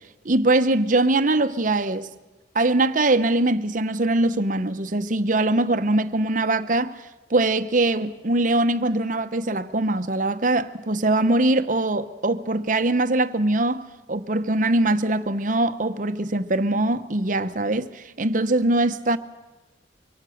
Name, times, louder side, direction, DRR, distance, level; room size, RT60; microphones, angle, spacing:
voice 1, 0.2-2.1 2.5-7.0 7.3-13.8 14.1-19.2, right 2 dB, 45° right, 0.9 m, -22 dB
25.5 x 24.0 x 6.5 m
head